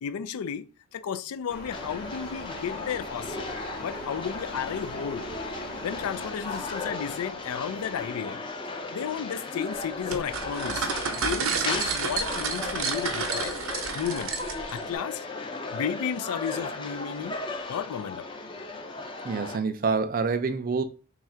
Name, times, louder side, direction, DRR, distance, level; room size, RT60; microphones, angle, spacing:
voice 1, 0.0-3.5 3.8-5.3 5.8-8.4 8.9-13.6 13.9-14.3 14.7-15.2 15.7-17.4 17.7-18.3, left 7 dB, 85° left, 0.4 m, -33 dB
sound 1, 1.5-8.2, left 1 dB, 45° left, 0.8 m, -42 dB
sound 2, 1.7-19.6, left 3 dB, 25° left, 0.4 m, -36 dB
sound 3, 10.1-14.8, right 5 dB, 75° right, 0.6 m, -30 dB
voice 2, 19.2-20.8, right 4 dB, 40° right, 0.4 m, -27 dB
3.4 x 2.4 x 4.3 m
head